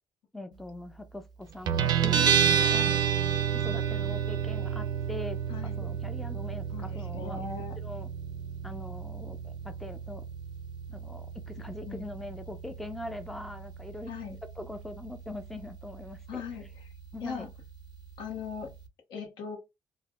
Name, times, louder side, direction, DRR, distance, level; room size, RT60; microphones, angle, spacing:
voice 1, 0.3-2.9 3.5-7.4 7.8-8.1 8.6-10.3 10.9-14.1 14.6-16.4 17.1-17.5, left 1 dB, 5° left, 0.4 m, -42 dB
Guitar, 1.7-18.9, right 8 dB, 65° right, 0.5 m, -31 dB
voice 2, 5.5-5.9 6.7-7.8 11.8-12.1 14.1-14.4 16.3-16.7 17.2-17.5 18.2-18.7 19.1-19.6, left 6 dB, 80° left, 1.0 m, -39 dB
3.2 x 2.1 x 2.3 m
cardioid pair, 125°, 8 cm